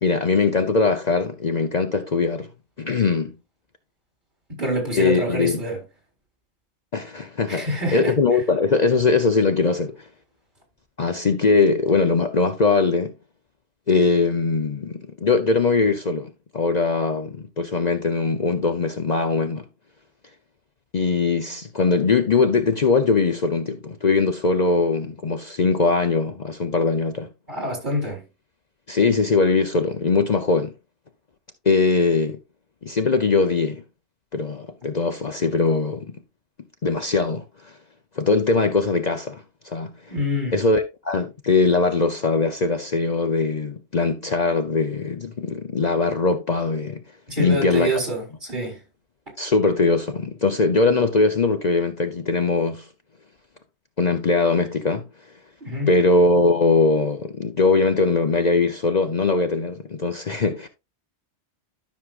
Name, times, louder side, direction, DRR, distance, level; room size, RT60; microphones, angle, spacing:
voice 1, 0.0-2.5 2.8-3.3 4.9-5.6 6.9-10.1 11.0-13.1 13.9-19.6 20.9-27.3 28.9-30.7 31.6-32.4 32.8-33.8 34.3-36.1 36.8-37.8 38.2-39.9 40.5-47.0 47.4-47.9 49.4-52.9 54.0-55.1 55.9-60.7, left 4 dB, 45° left, 0.8 m, -21 dB
voice 2, 4.5-5.8 7.5-8.1 27.5-28.2 40.1-40.6 47.3-48.8 55.6-55.9, equal, 45° right, 4.4 m, -26 dB
13.0 x 6.4 x 2.5 m
omnidirectional pair, 1.1 m